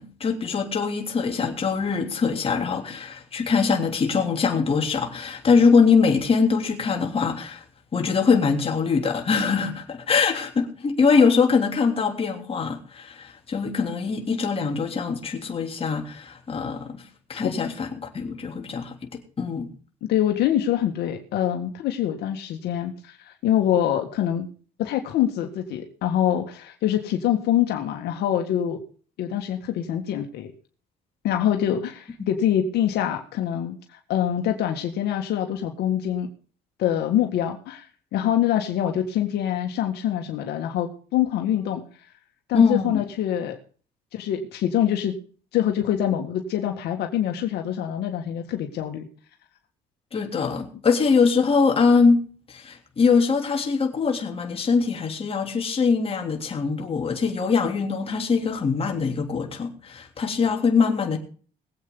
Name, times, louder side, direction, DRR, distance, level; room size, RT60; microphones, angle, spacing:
voice 1, 0.0-7.6 7.9-17.0 17.3-19.7 42.5-43.0 50.1-52.2 52.5-61.2, left 5 dB, 35° left, 3.2 m, -22 dB
voice 2, 20.1-24.5 24.8-28.8 29.2-30.5 31.2-33.8 34.1-36.3 36.8-37.8 38.1-41.8 42.5-43.6 44.1-45.1 45.5-49.1, left 10 dB, 75° left, 1.9 m, -25 dB
21.5 x 8.4 x 3.9 m
cardioid pair, 110°, 17 cm